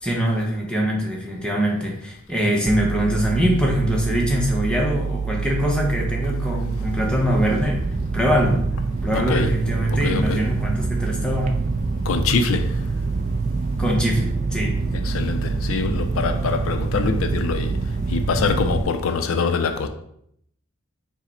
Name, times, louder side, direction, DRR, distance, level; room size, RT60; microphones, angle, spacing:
voice 1, 0.0-7.8 8.1-8.6 9.0-11.6 13.8-14.8, equal, 5° left, 0.7 m, -23 dB
sound 1, 2.7-18.8, right 4 dB, 35° right, 0.3 m, -25 dB
voice 2, 9.1-9.5 10.0-10.4 12.1-12.7 15.0-17.8 18.1-19.9, left 4 dB, 75° left, 0.4 m, -24 dB
4.7 x 2.1 x 4.2 m
head